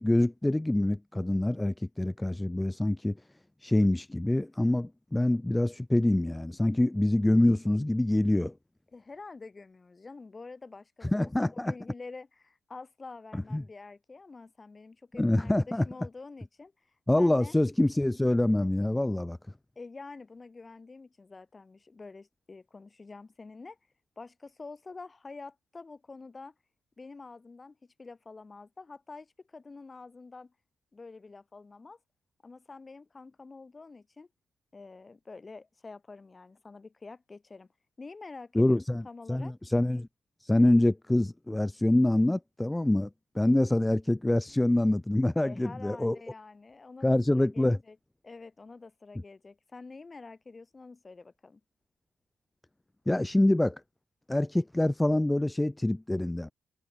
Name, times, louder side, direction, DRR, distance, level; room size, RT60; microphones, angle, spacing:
voice 1, 0.0-3.2 3.6-8.5 11.0-11.7 13.3-13.6 15.2-15.8 17.1-19.4 38.5-40.1 40.4-43.1 43.4-46.2 47.0-47.8 53.1-53.8 54.3-56.5, left 1 dB, 10° left, 0.4 m, -25 dB
voice 2, 8.9-16.7 17.2-17.6 19.8-23.8 24.2-26.5 27.0-30.5 30.9-32.0 32.4-34.3 34.7-37.7 38.0-39.5 45.4-48.0 48.2-51.6, left 3 dB, 25° left, 7.1 m, -47 dB
cardioid pair, 90°, 0 cm